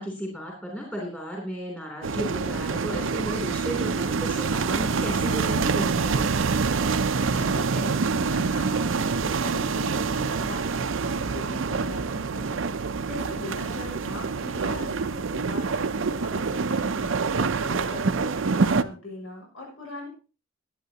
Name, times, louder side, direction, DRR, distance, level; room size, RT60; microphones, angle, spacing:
voice 1, 0.0-6.3 17.4-17.9, equal, 10° left, -2 dB, 3.1 m, -34 dB
sound 1, 2.0-18.8, right 4 dB, 65° right, 0.6 m, -26 dB
voice 2, 7.2-12.6 13.0-20.1, left 2 dB, 65° left, -2 dB, 6.5 m, -40 dB
21.5 x 9.0 x 2.9 m, 0.34 s
head